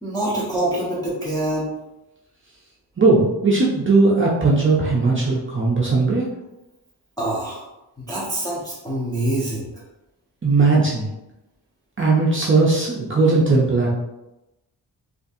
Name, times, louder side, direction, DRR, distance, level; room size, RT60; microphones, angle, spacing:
voice 1, 0.0-1.7 7.2-7.6 8.0-9.7, right 1 dB, 10° left, -8 dB, 0.7 m, -25 dB
voice 2, 3.0-6.3 10.4-11.1 12.0-13.9, right 3 dB, 30° right, -5 dB, 0.5 m, -18 dB
3.9 x 2.5 x 2.6 m, 0.96 s
wide cardioid pair, 130°, 43 cm